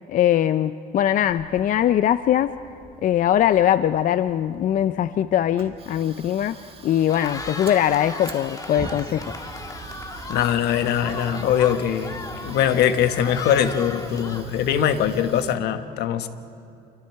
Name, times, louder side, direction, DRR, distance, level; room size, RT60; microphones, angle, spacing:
voice 1, 0.1-2.5 3.0-6.6 6.8-9.3, left 11 dB, 50° left, 13 dB, 0.5 m, -21 dB
Fire, 1.3-15.6, right 4 dB, 35° right, 1.8 m, -43 dB
Cheering, 7.0-15.2, left 3 dB, 20° left, 1.5 m, -36 dB
voice 2, 10.3-16.3, left 9 dB, 80° left, 9 dB, 1.2 m, -22 dB
29.0 x 24.0 x 4.7 m, 2.7 s
cardioid pair, 110°, 17 cm